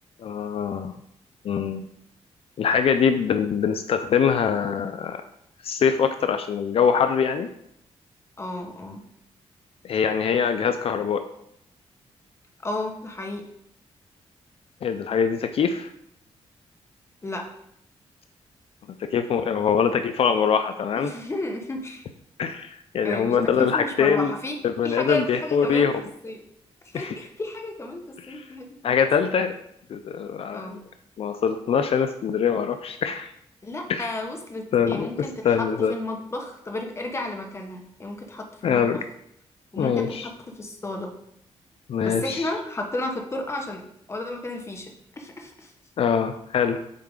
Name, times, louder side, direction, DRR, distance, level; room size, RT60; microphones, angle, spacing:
voice 1, 0.2-0.9 1.4-1.8 2.6-5.2 5.6-7.5 9.8-11.2 14.8-15.9 19.1-21.1 22.4-24.3 24.6-25.9 26.9-27.2 28.3-28.4 28.8-29.5 29.9-30.8 31.2-33.3 33.9-34.1 34.7-35.9 38.6-39.0 39.8-40.3 41.9-42.4 46.0-46.8, left 7 dB, 60° left, 8 dB, 0.5 m, -23 dB
voice 2, 8.4-9.0 12.6-13.4 17.2-17.4 21.0-22.0 23.0-24.6 24.8-25.9 26.2-26.4 26.9-29.0 29.2-29.3 30.5-30.8 33.6-39.0 39.7-41.1 42.0-43.8 44.1-45.7, left 2 dB, 25° left, 3 dB, 1.2 m, -33 dB
7.4 x 4.7 x 3.7 m, 0.74 s
cardioid pair, 105°, 11 cm